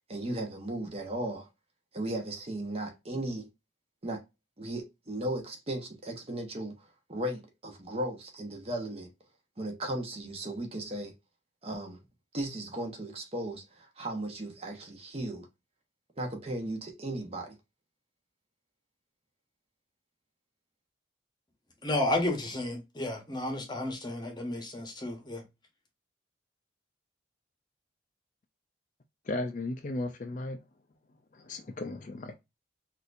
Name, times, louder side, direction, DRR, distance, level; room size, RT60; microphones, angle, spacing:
voice 1, 0.1-1.5 1.9-3.5 4.0-4.2 4.6-6.7 7.1-9.1 9.6-11.1 11.6-12.0 12.3-15.5 16.2-17.6, right 1 dB, 30° right, 0.9 m, -36 dB
voice 2, 21.8-25.4, left 1 dB, 20° left, 1.0 m, -32 dB
voice 3, 29.3-30.6 31.3-32.4, left 2 dB, 40° left, 0.4 m, -35 dB
4.1 x 2.6 x 2.5 m
head